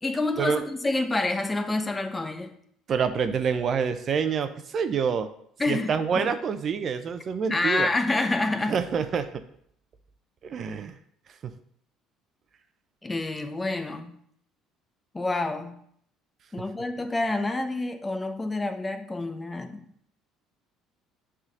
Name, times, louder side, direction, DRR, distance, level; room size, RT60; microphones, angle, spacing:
voice 1, 0.0-2.6 5.6-6.3 7.5-8.8 13.0-14.2 15.1-15.8 16.5-19.9, left 2 dB, 20° left, 7 dB, 0.9 m, -28 dB
voice 2, 2.9-5.3 5.7-7.9 8.7-9.4 10.4-10.9 11.4-11.5, right 6 dB, 50° right, 9 dB, 0.7 m, -27 dB
7.2 x 3.7 x 6.4 m, 0.67 s
supercardioid pair, 75°, 0 cm